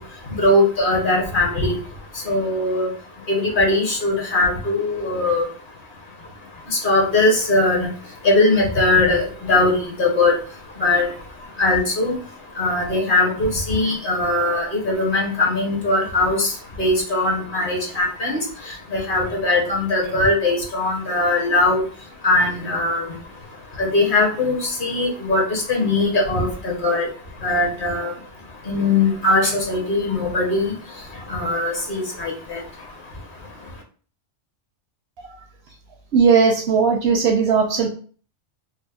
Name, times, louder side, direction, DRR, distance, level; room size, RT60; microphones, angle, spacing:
voice 1, 0.0-5.7 6.2-33.8, left 2 dB, 50° left, -1 dB, 1.0 m, -21 dB
voice 2, 36.1-37.9, right 5 dB, 65° right, 4 dB, 0.8 m, -17 dB
4.7 x 2.0 x 2.4 m, 0.42 s
omnidirectional pair, 1.3 m